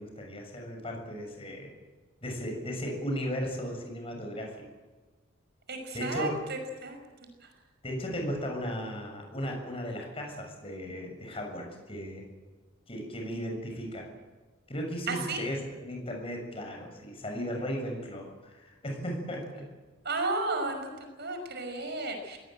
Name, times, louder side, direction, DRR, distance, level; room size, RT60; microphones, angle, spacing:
voice 1, 0.0-1.7 2.2-4.6 5.9-6.3 7.8-12.3 12.9-14.1 14.7-19.7, equal, 30° left, 2 dB, 7.0 m, -36 dB
voice 2, 5.7-7.0 7.4-7.5 15.1-15.4 20.0-22.4, right 2 dB, 55° right, 5 dB, 5.7 m, -33 dB
24.0 x 19.0 x 9.1 m, 1.3 s
head